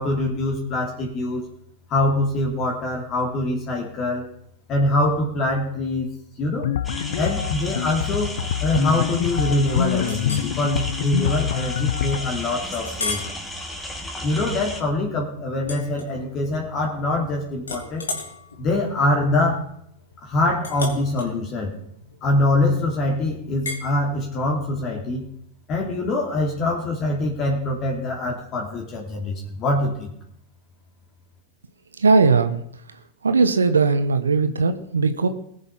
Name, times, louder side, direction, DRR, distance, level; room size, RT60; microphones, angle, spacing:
voice 1, 0.0-1.4 1.9-4.3 4.7-6.1 6.4-6.7 7.2-8.3 8.6-13.2 14.2-18.0 18.6-19.6 20.2-21.7 22.2-25.3 25.7-30.1, left 2 dB, 40° left, -1 dB, 2.8 m, -24 dB
sound 1, 6.6-12.3, left 11 dB, 70° left, 0.6 m, -26 dB
sound 2, 6.8-14.8, left 1 dB, 10° left, 2.3 m, -34 dB
Chink clink, 10.0-10.5 11.0-11.2 11.7-11.8 12.7-13.4 13.9-14.1 15.6-16.6 16.9-17.3 17.6-22.7 23.7-23.9, left 3 dB, 85° left, 3.3 m, -34 dB
voice 2, 32.0-32.6 33.2-35.3, right 4 dB, 85° right, 10 dB, 1.0 m, -18 dB
19.5 x 6.9 x 5.6 m, 0.73 s
hypercardioid pair, 100°, 0 cm